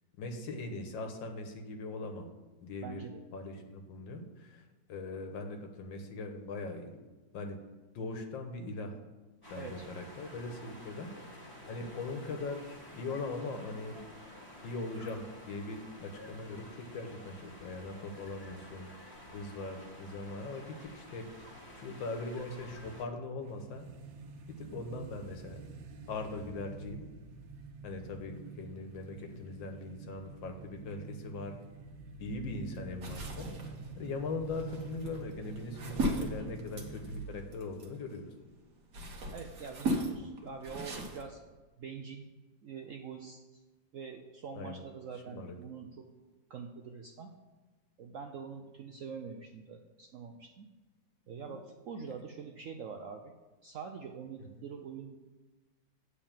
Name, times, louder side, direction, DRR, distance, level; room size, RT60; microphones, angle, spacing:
voice 1, 0.2-2.3 2.6-3.0 3.3-4.6 4.9-7.0 7.3-7.6 7.9-9.0 9.5-14.0 14.6-21.3 21.7-23.9 24.6-25.6 26.1-27.0 27.8-31.6 32.2-33.5 33.9-38.3 44.5-44.8 45.3-45.5 51.5-51.6, left 3 dB, 80° left, 5 dB, 1.8 m, -40 dB
voice 2, 2.8-3.2 9.5-9.9 24.9-25.1 39.3-41.4 41.8-42.3 42.6-43.6 43.9-46.1 46.5-47.3 48.0-50.7 51.3-53.3 53.6-55.2, right 6 dB, 70° right, 3 dB, 0.7 m, -45 dB
sound 1, 9.4-23.0, left 1 dB, 10° left, 1.7 m, -51 dB
sound 2, 23.4-37.7, right 4 dB, 85° right, 1.6 m, -48 dB
sound 3, 33.0-38.2 38.7-41.2, right 1 dB, 50° right, 1.6 m, -37 dB
9.0 x 4.3 x 7.3 m, 1.2 s
omnidirectional pair, 2.0 m